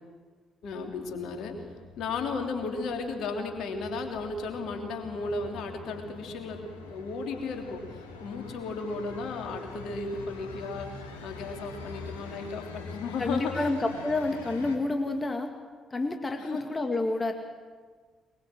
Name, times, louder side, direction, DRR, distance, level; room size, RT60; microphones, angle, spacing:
sound 1, 0.6-14.8, left 4 dB, 80° left, 2.5 m, -45 dB
voice 1, 0.6-1.6 2.0-13.7 16.4-16.6, left 3 dB, 60° left, 3 dB, 3.2 m, -35 dB
voice 2, 13.2-15.5 15.9-17.3, left 2 dB, 25° left, 5 dB, 2.2 m, -29 dB
23.0 x 23.0 x 7.8 m, 1.5 s
figure-of-eight pair, 40°, 0 cm